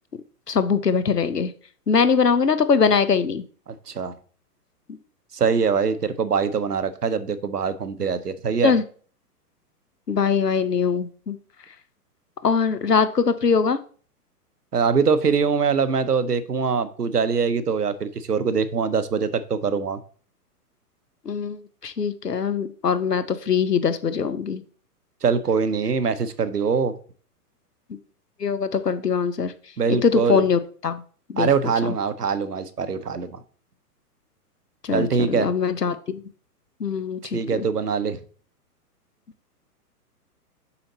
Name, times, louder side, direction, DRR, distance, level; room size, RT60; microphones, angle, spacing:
voice 1, 0.5-1.5 1.9-3.4 8.6-8.8 10.1-11.4 12.4-13.8 21.3-24.6 28.4-29.5 30.0-31.0 31.3-31.5 31.8-31.9 34.8-36.2 36.8-37.7, left 6 dB, 85° left, 13 dB, 0.9 m, -22 dB
voice 2, 3.7-4.1 5.3-8.7 14.7-20.0 25.2-26.9 29.8-30.4 31.4-33.4 34.9-35.5 37.3-38.2, right 5 dB, 80° right, 13 dB, 0.9 m, -23 dB
7.0 x 5.0 x 4.1 m, 0.43 s
figure-of-eight pair, 110°, 47 cm